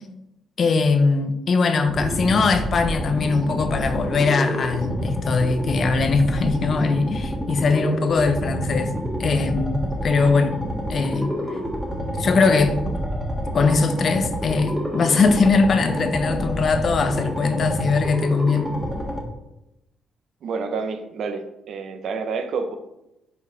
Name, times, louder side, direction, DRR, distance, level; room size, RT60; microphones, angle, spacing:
voice 1, 0.6-8.9 9.2-10.6 10.9-11.3 12.2-12.8 13.5-18.7, left 4 dB, 50° left, 0.7 m, -21 dB
sound 1, 1.9-19.2, equal, ahead, 1.4 m, -28 dB
voice 2, 20.4-22.7, right 4 dB, 65° right, 0.8 m, -29 dB
5.2 x 4.8 x 4.9 m
cardioid pair, 90°, 0 cm